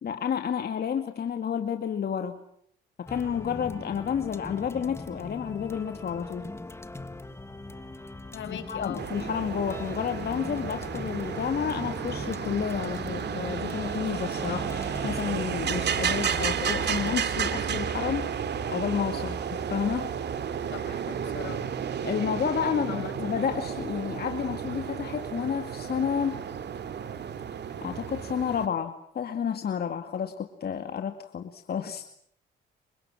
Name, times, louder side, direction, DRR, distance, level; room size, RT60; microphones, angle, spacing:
voice 1, 0.0-2.4 3.0-6.5 8.7-18.3 18.7-20.1 22.0-26.4 27.8-32.1, left 7 dB, 50° left, 6 dB, 2.3 m, -30 dB
sound 1, 3.1-18.4, left 2 dB, 15° left, 2.3 m, -41 dB
voice 2, 8.3-9.0 20.7-21.6 22.9-23.1, left 9 dB, 75° left, 10 dB, 5.8 m, -39 dB
sound 2, 9.0-28.7, right 7 dB, 60° right, 2.8 m, -32 dB
29.5 x 25.5 x 7.5 m, 0.69 s
cardioid pair, 90°, 20 cm